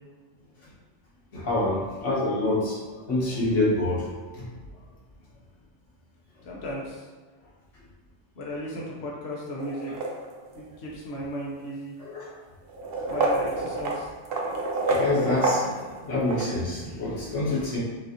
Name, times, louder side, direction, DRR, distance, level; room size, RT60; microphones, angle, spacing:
voice 1, 1.3-2.8 3.1-4.0 12.0-12.2 13.1-13.3 14.9-15.7 16.0-17.8, left 2 dB, 90° left, -6 dB, 1.5 m, -26 dB
voice 2, 6.4-7.1 8.4-9.9 10.6-11.9 13.1-14.1, equal, 65° left, -4 dB, 1.0 m, -35 dB
sound 1, 9.6-10.6 11.6-11.7 12.7-16.5, right 2 dB, 60° right, 0.8 m, -28 dB
5.9 x 2.5 x 2.8 m, 1.4 s
omnidirectional pair, 1.2 m